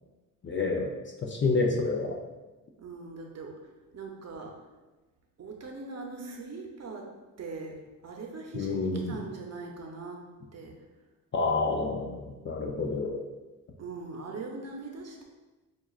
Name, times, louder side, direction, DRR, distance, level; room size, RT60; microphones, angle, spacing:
voice 1, 0.4-0.9 1.2-2.2 8.5-9.1 11.3-13.2, left 3 dB, 35° left, 0 dB, 0.4 m, -28 dB
voice 2, 2.8-3.6 3.9-4.5 5.4-7.1 7.4-10.2 10.5-10.7 13.8-15.2, right 3 dB, 45° right, 1 dB, 0.7 m, -41 dB
5.7 x 2.4 x 2.4 m, 1.2 s
cardioid pair, 100°, 37 cm